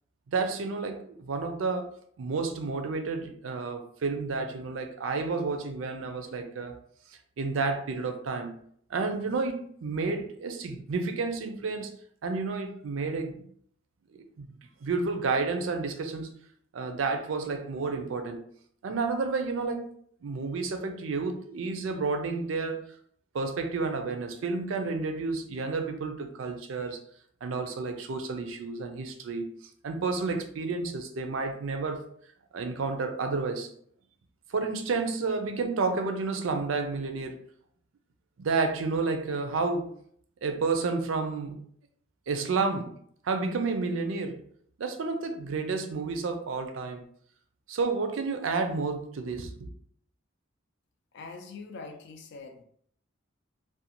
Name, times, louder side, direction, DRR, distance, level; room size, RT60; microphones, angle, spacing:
voice 1, 0.3-1.9 2.2-6.8 7.4-8.6 8.9-11.9 12.2-13.5 14.1-14.5 14.8-16.3 16.7-18.5 18.8-19.9 20.2-22.8 23.3-27.0 27.4-29.6 29.8-32.0 32.5-33.7 34.5-37.4 38.4-39.9 40.4-41.7 42.3-43.0 43.2-44.4 44.8-47.1 47.7-49.7, right 4 dB, 75° right, 0.4 m, -30 dB
voice 2, 51.1-52.6, left 4 dB, 60° left, 0.4 m, -43 dB
2.5 x 2.2 x 2.8 m
head